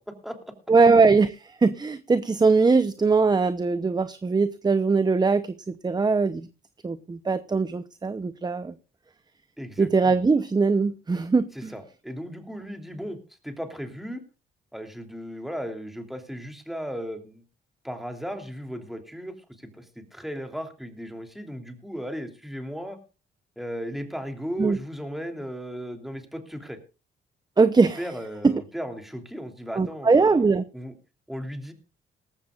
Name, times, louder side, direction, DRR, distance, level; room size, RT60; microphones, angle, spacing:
voice 1, 0.0-0.5 9.6-9.9 11.5-13.2 13.4-14.2 14.7-17.4 17.8-23.0 23.6-26.8 28.0-30.9 31.3-31.7, equal, ahead, 4 dB, 3.0 m, -36 dB
voice 2, 0.7-6.4 6.8-8.7 9.8-11.7 24.6-24.8 27.6-28.0 28.4-28.6 29.8-30.6, right 4 dB, 20° right, 13 dB, 0.8 m, -21 dB
18.5 x 15.0 x 2.4 m, 0.33 s
cardioid pair, 90°, 20 cm